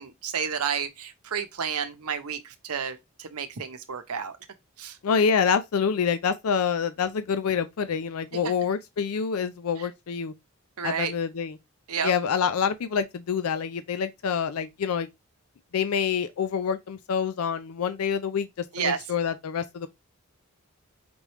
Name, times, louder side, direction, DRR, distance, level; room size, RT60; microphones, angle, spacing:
voice 1, 0.0-4.3 4.8-5.0 8.4-8.5 9.8-9.9 10.8-11.1 11.9-12.1 18.7-19.0, right 7 dB, 90° right, 0.8 m, -31 dB
voice 2, 5.0-10.3 10.8-11.6 12.0-15.1 15.7-19.9, left 6 dB, 85° left, 0.5 m, -27 dB
5.1 x 3.3 x 3.0 m
head